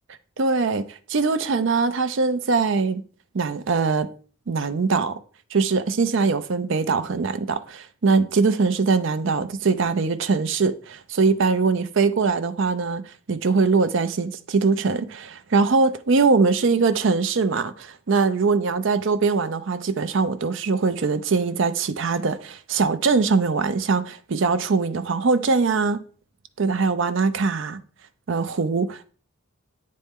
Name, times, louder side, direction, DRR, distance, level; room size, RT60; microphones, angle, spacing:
voice 1, 0.4-3.0 3.3-4.1 4.5-5.2 5.5-26.0 26.6-27.8 28.3-29.1, right 4 dB, 55° right, 0.5 m, -22 dB
8.8 x 4.2 x 3.6 m
head